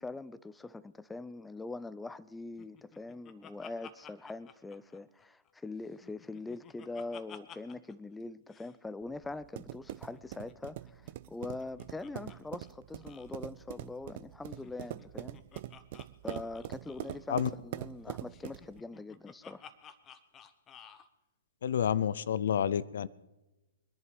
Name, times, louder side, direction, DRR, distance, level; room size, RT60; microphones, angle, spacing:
voice 1, 0.0-15.4 16.2-19.7, left 3 dB, 5° left, 16 dB, 0.5 m, -43 dB
Laughter, 2.6-5.5 5.8-7.9 8.2-8.3 8.5-8.7 10.0-12.4 12.6-12.7 13.0-13.3 14.5-17.3 18.3-21.1, left 8 dB, 25° left, 1.1 m, -54 dB
sound 1, 9.0-18.8, right 14 dB, 50° right, 0.6 m, -43 dB
voice 2, 21.6-23.1, left 8 dB, 65° left, 20 dB, 0.6 m, -29 dB
22.0 x 11.0 x 5.2 m, 1.0 s
figure-of-eight pair, 115°, 0 cm